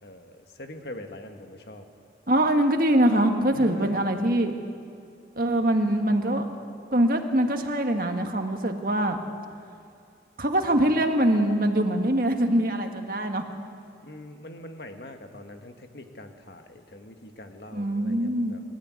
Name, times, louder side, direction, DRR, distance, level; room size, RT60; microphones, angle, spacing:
voice 1, 0.0-1.9 3.5-4.0 14.0-18.6, left 1 dB, 65° left, 5 dB, 1.7 m, -43 dB
voice 2, 2.3-4.5 5.4-6.5 6.9-9.2 10.4-13.4 17.7-18.6, right 1 dB, 50° right, 4 dB, 1.7 m, -23 dB
25.0 x 13.5 x 9.6 m, 2.4 s
head